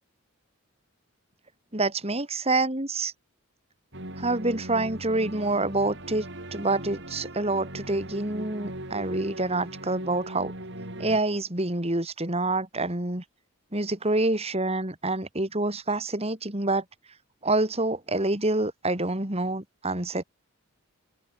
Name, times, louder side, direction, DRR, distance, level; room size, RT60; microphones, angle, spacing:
voice 1, 1.7-3.1 4.2-6.2 6.5-10.5 11.0-13.2 13.7-16.8 17.4-20.2, right 2 dB, 30° right, 3.0 m, -27 dB
sound 1, 3.9-11.2, right 1 dB, 55° right, 7.6 m, -39 dB
open air
head